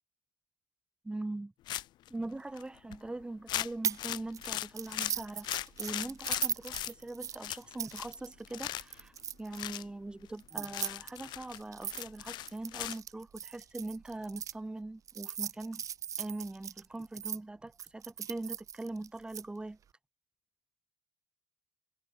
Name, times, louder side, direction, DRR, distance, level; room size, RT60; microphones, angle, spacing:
voice 1, 1.0-1.5 2.1-5.5 5.8-9.1 9.4-15.8 16.2-19.8, right 2 dB, 10° right, 6.6 m, -41 dB
sound 1, 1.7-2.1 2.6-2.7 2.9-3.1 3.5-6.9 7.4-8.2 8.4-9.0 9.5-9.8 10.3-10.4 10.7-13.0, left 14 dB, 70° left, 1.5 m, -38 dB
sound 2, 3.8-4.0 4.3-9.6 10.4-14.5 15.1-17.4 17.8-19.4, right 8 dB, 45° right, 1.3 m, -39 dB
cardioid pair, 115°, 8 cm